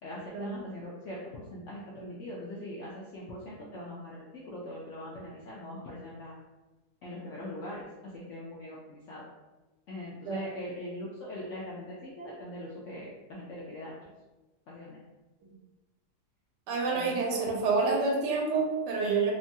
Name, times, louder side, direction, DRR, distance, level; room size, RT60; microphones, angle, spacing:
voice 1, 0.0-6.4 7.0-9.2 9.9-13.9 14.7-15.0 16.9-17.4, left 1 dB, 75° left, -5 dB, 0.7 m, -41 dB
voice 2, 16.7-19.3, right 4 dB, 90° right, -1 dB, 1.2 m, -28 dB
3.0 x 2.2 x 2.6 m, 1.1 s
omnidirectional pair, 1.7 m